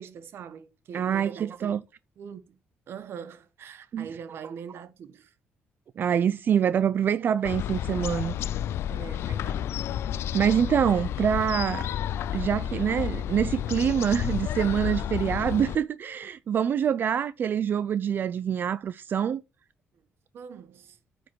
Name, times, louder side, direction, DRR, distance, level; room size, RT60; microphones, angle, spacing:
voice 1, 0.0-1.7 2.2-2.6 2.9-5.3 8.9-9.7 10.3-10.6 20.3-21.0, right 7 dB, 65° right, 1.1 m, -42 dB
voice 2, 0.9-1.8 3.9-4.1 6.0-8.4 10.3-11.9 12.3-19.4, right 8 dB, 50° right, 0.4 m, -25 dB
sound 1, 7.4-15.8, left 10 dB, 75° left, 0.4 m, -31 dB
9.2 x 5.1 x 4.5 m
cardioid pair, 115°, 4 cm